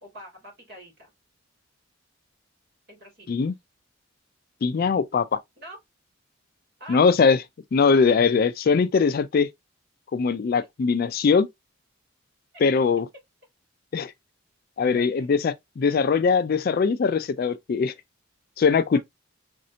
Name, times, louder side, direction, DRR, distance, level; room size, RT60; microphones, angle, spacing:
voice 1, 0.0-1.1 2.9-3.3 5.6-5.8 6.8-7.0 12.5-12.6 14.9-15.3 15.9-16.0 18.9-19.0, right 1 dB, 50° right, 2.4 m, -45 dB
voice 2, 4.6-5.4 6.9-7.4 7.7-9.5 10.1-11.5 12.6-13.1 13.9-14.1 14.8-17.9 18.6-19.0, left 5 dB, 45° left, 0.3 m, -21 dB
4.1 x 2.6 x 2.7 m
head